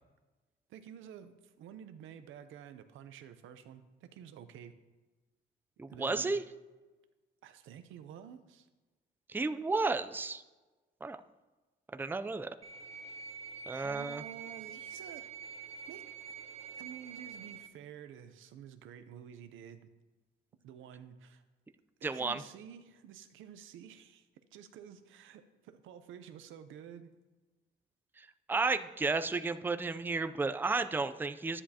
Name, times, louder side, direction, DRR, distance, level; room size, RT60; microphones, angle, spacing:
voice 1, 0.7-4.8 5.9-6.4 7.4-8.7 13.7-15.3 15.6-16.1 16.7-19.9 20.6-21.4 22.0-27.1, right 8 dB, 85° right, 10 dB, 0.7 m, -50 dB
voice 2, 5.8-6.4 9.3-10.4 11.0-11.2 11.9-12.5 13.7-14.2 22.0-22.4 28.2-31.6, right 3 dB, 10° right, 9 dB, 0.4 m, -33 dB
sound 1, 12.6-17.7, right 7 dB, 35° right, 0.9 m, -46 dB
11.0 x 9.8 x 2.9 m, 1.2 s
cardioid pair, 90°, 20 cm